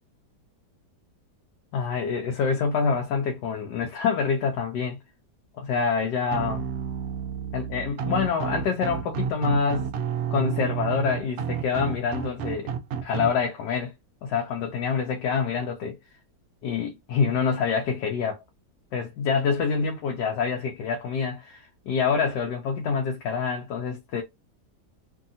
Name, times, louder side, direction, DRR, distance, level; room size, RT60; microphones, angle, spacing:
voice 1, 1.7-5.0 5.6-6.7 7.5-9.9 10.3-12.7 13.0-13.9 14.2-16.0 16.6-18.4 18.9-24.2, left 5 dB, 90° left, 1.2 m, -26 dB
sound 1, 6.3-13.3, right 8 dB, 85° right, 0.6 m, -30 dB
2.8 x 2.7 x 2.5 m
omnidirectional pair, 1.8 m